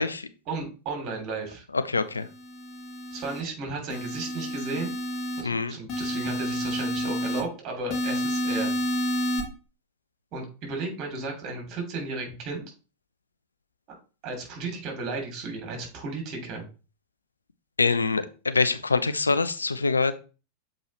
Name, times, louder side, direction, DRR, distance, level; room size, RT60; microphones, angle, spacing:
voice 1, 0.5-1.6 3.1-4.9 5.4-8.7 10.3-12.6 14.2-16.6, right 3 dB, 35° right, 2 dB, 2.8 m, -34 dB
voice 2, 1.7-2.3 5.4-5.8 17.8-20.1, left 4 dB, 80° left, 12 dB, 0.5 m, -25 dB
sound 1, 2.3-3.4 3.9-5.4 5.9-7.4 7.9-9.4, equal, 40° left, 2.1 m, -29 dB
7.2 x 4.7 x 3.1 m, 0.34 s
figure-of-eight pair, 90°, 0 cm